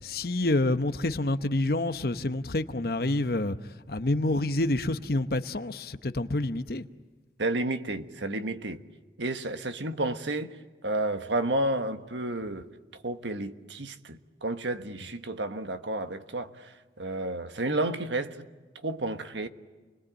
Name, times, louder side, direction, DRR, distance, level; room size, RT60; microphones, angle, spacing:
voice 1, 0.0-3.6 3.9-6.9, left 2 dB, 55° left, 1.0 m, -28 dB
voice 2, 7.4-8.8 9.2-10.6 10.8-12.7 13.0-18.5 18.8-19.5, right 2 dB, 80° right, 1.4 m, -31 dB
29.5 x 21.5 x 8.8 m
head